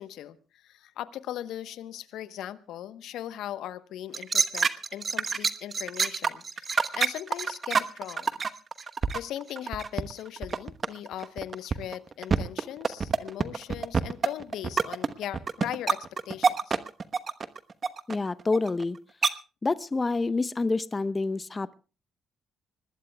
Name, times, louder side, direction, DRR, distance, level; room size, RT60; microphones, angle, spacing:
voice 1, 0.0-8.3 9.1-16.8, left 12 dB, 75° left, 14 dB, 1.0 m, -39 dB
sound 1, 4.1-10.1 10.4-19.0 19.2-19.3, right 5 dB, 45° right, 1.1 m, -26 dB
voice 2, 18.1-19.0 19.6-21.7, left 3 dB, 30° left, 15 dB, 0.8 m, -27 dB
25.0 x 20.0 x 2.3 m, 0.33 s
supercardioid pair, 55°, 0 cm